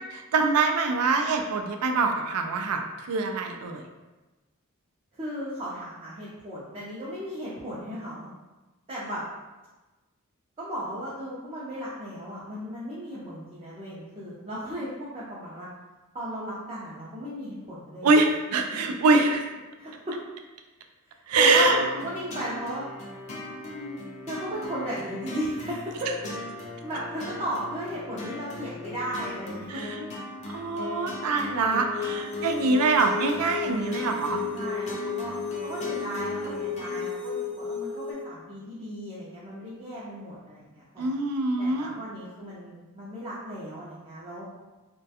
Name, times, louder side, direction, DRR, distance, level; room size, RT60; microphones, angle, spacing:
voice 1, 0.3-3.8 18.0-19.5 21.3-21.8 29.7-30.0 30.5-34.4 41.0-41.9, right 3 dB, 90° right, 4 dB, 0.3 m, -24 dB
voice 2, 5.1-8.3 8.9-9.3 10.6-15.7 16.1-18.1 19.8-20.2 21.3-22.9 23.6-24.0 24.2-26.1 26.8-29.8 34.5-35.4 35.6-41.1 41.6-44.5, equal, 25° right, -8 dB, 0.4 m, -35 dB
sound 1, 21.6-37.1, left 1 dB, 30° left, 0.4 m, -39 dB
sound 2, 31.9-38.1, left 6 dB, 60° left, 0.7 m, -33 dB
2.3 x 2.2 x 2.7 m, 1.2 s
head